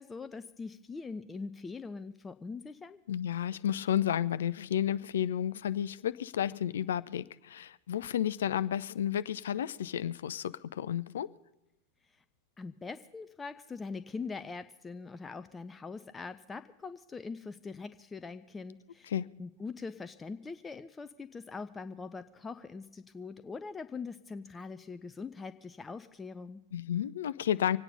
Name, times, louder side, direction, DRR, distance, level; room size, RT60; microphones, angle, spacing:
voice 1, 0.0-3.0 12.0-12.2 12.6-19.1 19.4-26.6, left 4 dB, 15° left, 0.6 m, -42 dB
voice 2, 3.1-11.3 19.1-19.3 26.7-27.8, left 10 dB, 60° left, 0.5 m, -32 dB
24.5 x 9.1 x 5.5 m
figure-of-eight pair, 90°, 0 cm